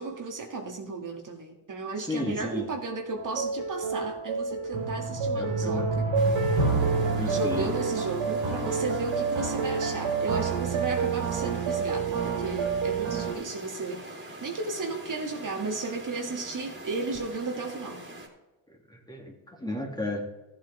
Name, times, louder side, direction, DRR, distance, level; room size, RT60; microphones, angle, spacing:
voice 1, 0.0-6.1 7.3-18.0, right 3 dB, 40° right, 2 dB, 1.9 m, -34 dB
voice 2, 2.0-2.7 5.3-6.0 7.1-7.7 18.7-20.2, left 1 dB, 10° left, 1 dB, 2.2 m, -34 dB
sound 1, 3.2-13.3, right 4 dB, 70° right, 3.3 m, -28 dB
sound 2, 6.1-18.3, right 1 dB, 25° right, 2.9 m, -44 dB
14.0 x 8.1 x 3.3 m, 1.1 s
supercardioid pair, 70°, 47 cm